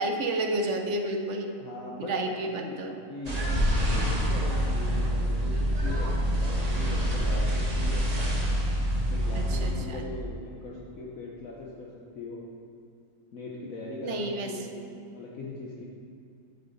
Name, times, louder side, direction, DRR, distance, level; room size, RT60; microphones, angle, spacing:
voice 1, 0.0-1.5 2.1-2.9 9.3-10.1 14.0-14.5, right 2 dB, 55° right, 4 dB, 1.0 m, -30 dB
voice 2, 1.6-6.1 6.4-8.1 9.1-12.4 13.3-15.8, left 3 dB, 60° left, -3 dB, 1.3 m, -40 dB
sound 1, 3.3-9.7, equal, 25° right, 1.5 m, -26 dB
9.6 x 8.6 x 4.1 m, 2.5 s
omnidirectional pair, 1.7 m